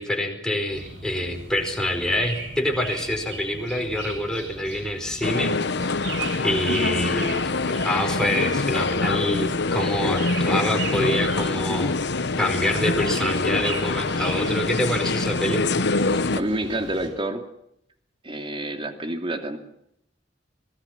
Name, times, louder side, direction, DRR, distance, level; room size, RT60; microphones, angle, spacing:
voice 1, 0.0-5.6 6.4-11.9 12.4-15.6, left 1 dB, 5° left, 2 dB, 4.9 m, -26 dB
sound 1, 0.7-17.1, right 3 dB, 75° right, 6.2 m, -38 dB
sound 2, 5.2-16.4, left 3 dB, 65° left, 1.1 m, -25 dB
voice 2, 16.3-17.4 18.2-19.6, right 1 dB, 30° right, 6 dB, 2.8 m, -28 dB
25.5 x 20.5 x 6.0 m, 0.76 s
head